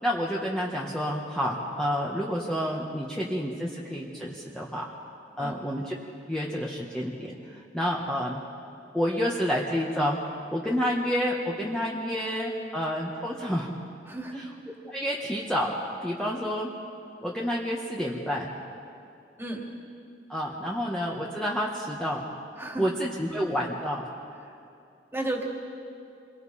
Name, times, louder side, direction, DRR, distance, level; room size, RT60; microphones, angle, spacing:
voice 1, 0.0-4.8 5.4-5.9 6.3-8.4 8.9-10.2 10.5-13.7 14.3-14.5 14.9-15.7 16.0-16.7 17.2-18.5 20.3-22.2 22.8-24.1, equal, 5° left, -4 dB, 1.5 m, -29 dB
voice 2, 14.1-14.4 19.4-19.7 22.6-22.9 25.1-25.4, right 1 dB, 15° right, 0 dB, 2.6 m, -33 dB
28.0 x 23.0 x 4.3 m, 2.6 s
head